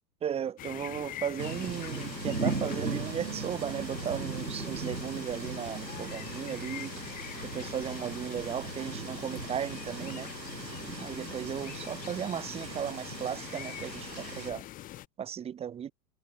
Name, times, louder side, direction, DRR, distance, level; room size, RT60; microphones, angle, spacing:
voice 1, 0.2-7.0 7.4-10.3 11.0-14.6 15.2-15.9, right 9 dB, 10° right, 1.0 m, -36 dB
sound 1, 0.6-15.1, left 14 dB, 15° left, 0.9 m, -44 dB
sound 2, 1.4-14.5, right 3 dB, 85° right, 2.4 m, -38 dB
sound 3, 2.9-6.2 6.4-6.5, right 14 dB, 50° right, 2.5 m, -46 dB
figure-of-eight pair, 105°, 49 cm